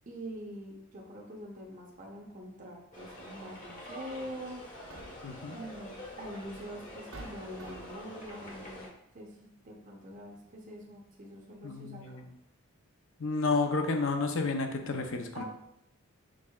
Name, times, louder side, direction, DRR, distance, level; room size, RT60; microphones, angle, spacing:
voice 1, 0.1-4.7 5.5-8.9 9.1-12.3 15.3-15.4, equal, 35° right, -1 dB, 0.7 m, -44 dB
sound 1, 2.9-8.9, left 1 dB, 35° left, 1.1 m, -46 dB
sound 2, 4.6-5.4 6.4-6.5 7.1-8.1, right 1 dB, 65° right, 0.8 m, -48 dB
voice 2, 5.2-5.6 11.6-12.3 13.2-15.4, left 3 dB, 60° left, 5 dB, 0.6 m, -31 dB
6.2 x 3.7 x 2.3 m, 0.79 s
head